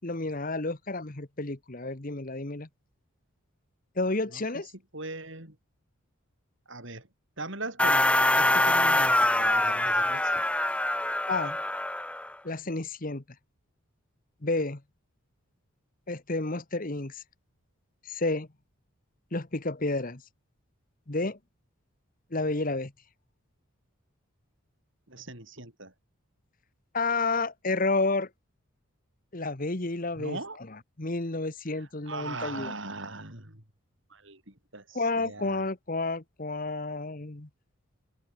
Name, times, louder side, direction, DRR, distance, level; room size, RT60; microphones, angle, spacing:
voice 1, 0.0-2.7 4.0-4.7 11.3-11.6 12.4-13.2 14.4-14.8 16.1-17.2 18.0-18.5 19.3-20.2 21.1-21.4 22.3-22.9 26.9-28.3 29.3-30.4 30.7-32.7 34.9-37.5, left 3 dB, 40° left, 1.3 m, -30 dB
voice 2, 4.9-5.6 6.7-7.1 7.4-10.4 25.1-25.9 30.2-30.6 31.8-33.6 34.1-35.7, right 2 dB, 55° right, 6.4 m, -40 dB
sound 1, 7.8-12.3, left 1 dB, 5° left, 0.8 m, -24 dB
head